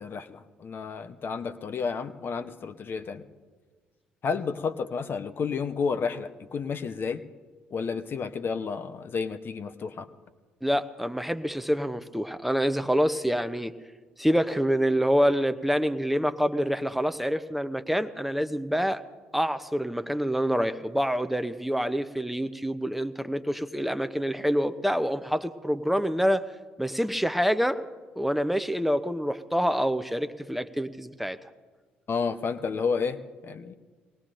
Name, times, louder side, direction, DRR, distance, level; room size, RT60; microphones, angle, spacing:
voice 1, 0.0-3.2 4.2-7.2 7.7-10.1 32.1-33.7, left 5 dB, 40° left, 10 dB, 0.7 m, -31 dB
voice 2, 10.6-13.7 14.2-19.0 19.3-26.5 26.8-27.9 28.2-31.4, equal, 5° right, 10 dB, 0.6 m, -26 dB
23.5 x 19.0 x 2.5 m, 1.5 s
figure-of-eight pair, 45°, 5 cm